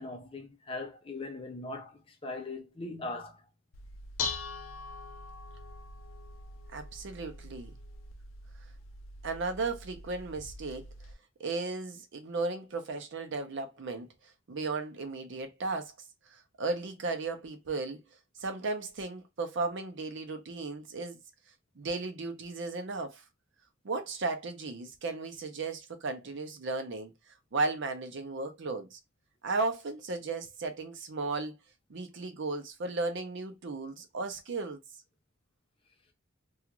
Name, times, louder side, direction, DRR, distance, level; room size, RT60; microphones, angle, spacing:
voice 1, 0.0-3.4, left 2 dB, 25° left, 0.5 m, -40 dB
Dishes pots and pans, 3.7-11.1, left 4 dB, 75° left, 0.4 m, -42 dB
voice 2, 6.7-7.7 9.2-10.9 11.4-14.1 14.5-15.9 16.3-18.0 18.4-21.2 21.8-23.2 23.8-27.1 27.5-29.0 29.4-31.6 31.9-34.8, right 3 dB, 60° right, 0.6 m, -35 dB
2.4 x 2.4 x 2.9 m
head